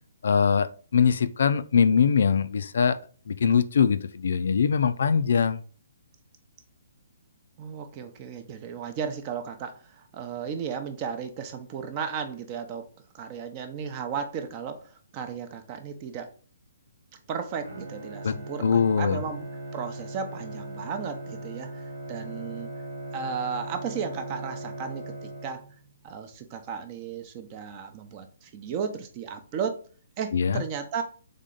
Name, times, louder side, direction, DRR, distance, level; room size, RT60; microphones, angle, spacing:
voice 1, 0.2-3.0 3.3-5.6 18.2-18.3 18.6-19.2 30.3-30.6, left 6 dB, 60° left, 12 dB, 0.3 m, -22 dB
voice 2, 7.6-12.9 13.1-16.3 17.3-19.4 19.7-22.7 23.1-25.7 26.0-29.8 30.2-31.0, right 6 dB, 30° right, 7 dB, 0.6 m, -34 dB
Bowed string instrument, 17.6-25.9, right 2 dB, 75° right, 1.1 m, -39 dB
3.7 x 3.3 x 3.8 m, 0.40 s
figure-of-eight pair, 130°, 0 cm